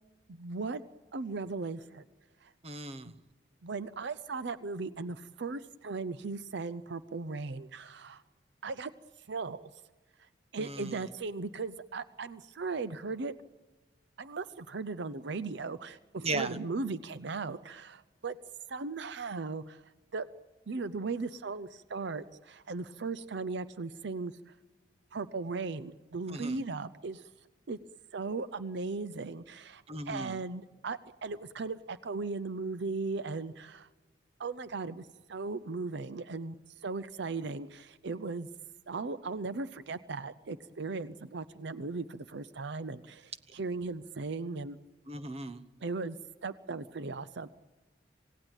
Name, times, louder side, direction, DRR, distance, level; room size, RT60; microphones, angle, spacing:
voice 1, 0.3-0.8 1.1-2.0 2.4-2.5 3.0-3.1 3.6-8.2 8.6-8.9 9.2-9.7 10.2-13.3 14.2-18.4 18.7-20.3 20.7-24.5 25.1-27.3 27.7-27.8 28.1-33.9 34.4-38.5 38.9-44.8 45.8-46.2 46.4-47.5, right 3 dB, 65° right, 13 dB, 0.6 m, -37 dB
voice 2, 2.6-3.1 10.6-11.0 16.2-16.6 26.3-26.6 29.9-30.4 45.1-45.6, right 2 dB, 35° right, 12 dB, 1.1 m, -37 dB
27.0 x 17.5 x 9.0 m, 1.3 s
head